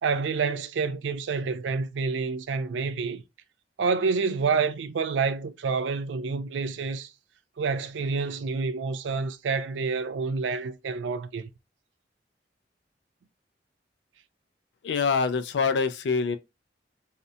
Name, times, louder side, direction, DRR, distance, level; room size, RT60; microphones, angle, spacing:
voice 1, 0.0-3.2 3.8-7.1 7.6-11.5, right 4 dB, 85° right, 0.4 m, -28 dB
voice 2, 14.8-16.4, left 5 dB, 70° left, 0.4 m, -25 dB
2.7 x 2.1 x 2.4 m
head